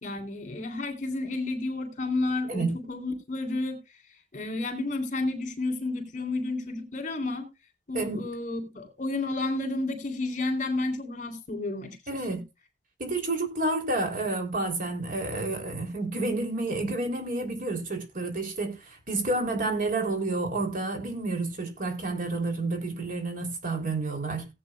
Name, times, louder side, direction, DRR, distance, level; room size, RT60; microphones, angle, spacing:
voice 1, 0.0-3.8 4.3-7.5 7.9-12.4, left 2 dB, 45° left, 3.1 m, -31 dB
voice 2, 12.1-12.4 13.0-24.5, right 2 dB, 50° right, 3.4 m, -30 dB
18.0 x 8.5 x 2.4 m
head